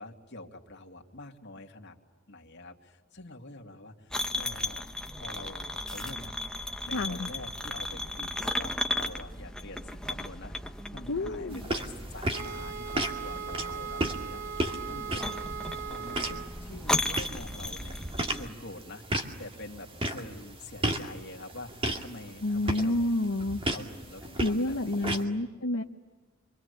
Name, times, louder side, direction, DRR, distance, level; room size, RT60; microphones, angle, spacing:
voice 1, 0.0-1.9 2.3-4.8 5.1-6.3 6.8-15.5 15.8-23.0 23.7-25.4, left 2 dB, 60° left, 2 dB, 2.5 m, -46 dB
sound 1, 4.1-18.5, left 1 dB, 5° left, 1.1 m, -36 dB
voice 2, 6.9-7.3 11.1-11.6 22.4-23.6 24.4-25.8, left 1 dB, 75° left, 3 dB, 1.0 m, -29 dB
sound 2, 11.5-25.2, right 1 dB, 30° right, 2.2 m, -35 dB
sound 3, 12.3-16.5, right 7 dB, 60° right, 2.7 m, -38 dB
27.5 x 24.5 x 8.2 m, 1.4 s
head